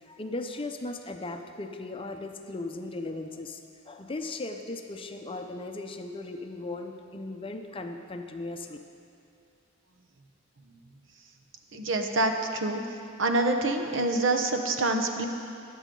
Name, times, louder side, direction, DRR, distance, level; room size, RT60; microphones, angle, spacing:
voice 1, 0.0-3.6 3.9-8.8, left 2 dB, 25° left, 5 dB, 0.7 m, -37 dB
voice 2, 11.7-12.8 13.2-15.3, right 2 dB, 70° right, 4 dB, 1.0 m, -26 dB
22.0 x 8.3 x 3.9 m, 2.8 s
head